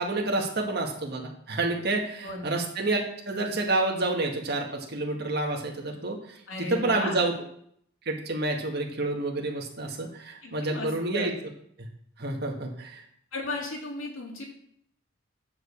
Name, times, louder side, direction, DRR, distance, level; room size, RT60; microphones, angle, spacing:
voice 1, 0.0-6.4 6.7-7.3 8.1-11.3 12.2-13.0, right 2 dB, 50° right, 1 dB, 1.8 m, -29 dB
voice 2, 6.5-7.1 10.4-11.3 13.3-14.4, left 2 dB, 75° left, -1 dB, 2.6 m, -35 dB
9.5 x 4.9 x 7.0 m, 0.68 s
head